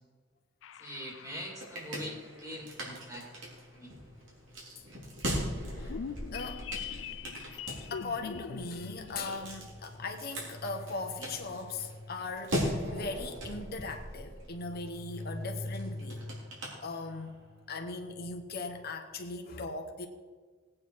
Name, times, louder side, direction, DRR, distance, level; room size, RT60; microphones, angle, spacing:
sound 1, 0.6-2.2 5.6-9.2, left 7 dB, 70° left, 0.4 m, -43 dB
voice 1, 0.8-3.9, equal, 20° right, 0 dB, 2.5 m, -43 dB
sound 2, 1.2-17.4, equal, 75° right, 3.5 m, -40 dB
voice 2, 6.3-6.7 7.9-16.4 16.8-17.4 17.7-20.1, left 3 dB, 55° left, 4 dB, 1.1 m, -38 dB
18.5 x 8.9 x 4.8 m, 1.4 s
head